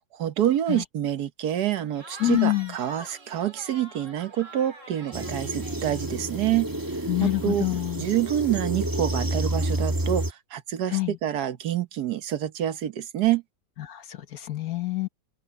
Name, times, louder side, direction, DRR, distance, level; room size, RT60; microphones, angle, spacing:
voice 1, 0.2-6.7 7.4-7.7 8.0-10.2 10.5-13.4, right 11 dB, 70° right, 1.5 m, -27 dB
Cheering / Crowd, 1.9-6.5, right 2 dB, 45° right, 3.3 m, -45 dB
voice 2, 2.2-2.7 7.1-8.1 10.9-11.2 13.8-15.1, left 17 dB, 60° left, 1.4 m, -26 dB
sound 1, 5.1-10.3, right 1 dB, 15° right, 1.3 m, -29 dB
omnidirectional pair, 1.8 m